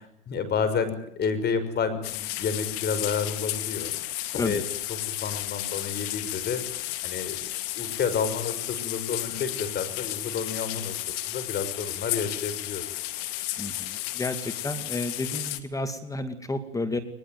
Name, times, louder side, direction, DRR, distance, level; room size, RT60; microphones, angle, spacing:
voice 1, 0.0-3.9 4.3-4.6 5.1-6.6 7.0-7.4 7.7-10.9 11.3-12.8, left 6 dB, 30° left, 11 dB, 6.0 m, -30 dB
sound 1, 2.0-15.6, left 16 dB, 60° left, 2.6 m, -33 dB
voice 2, 13.6-17.0, left 2 dB, 10° left, 8 dB, 2.4 m, -31 dB
22.0 x 21.5 x 9.4 m, 0.68 s
hypercardioid pair, 110°, 33 cm